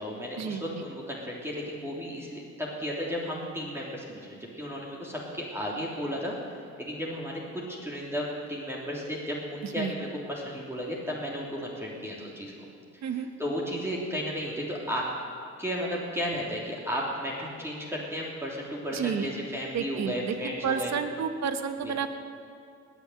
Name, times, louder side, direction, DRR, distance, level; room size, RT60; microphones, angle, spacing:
voice 1, 0.0-12.7 12.9-15.1 15.6-21.0 21.8-21.9, equal, 10° right, -4 dB, 3.1 m, -34 dB
voice 2, 18.9-19.3 19.7-20.3 20.6-22.2, right 7 dB, 65° right, 8 dB, 1.3 m, -30 dB
19.5 x 7.2 x 9.2 m, 2.4 s
cardioid pair, 90°, 30 cm